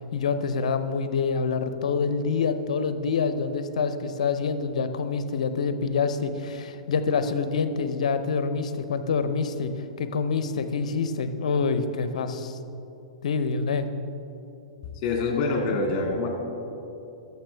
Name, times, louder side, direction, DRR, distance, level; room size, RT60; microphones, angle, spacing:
voice 1, 0.1-12.6 13.2-13.9, left 5 dB, 70° left, 10 dB, 0.6 m, -26 dB
voice 2, 15.0-16.3, left 3 dB, 40° left, 1 dB, 2.0 m, -25 dB
12.5 x 6.9 x 3.3 m, 3.0 s
hypercardioid pair, 115°, 4 cm